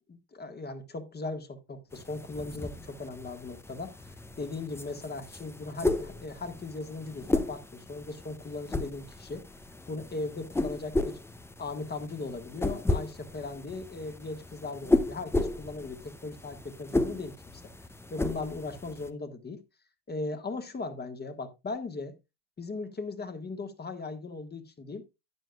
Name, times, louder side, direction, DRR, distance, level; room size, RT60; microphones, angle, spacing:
voice 1, 0.0-3.9 4.4-9.5 9.9-11.2 11.6-17.6 18.1-19.6 20.1-22.1 22.6-25.0, left 3 dB, 20° left, 1.6 m, -38 dB
sound 1, 1.9-19.1, left 2 dB, 5° left, 0.6 m, -34 dB
12.5 x 9.0 x 2.3 m
hypercardioid pair, 90°, 45 cm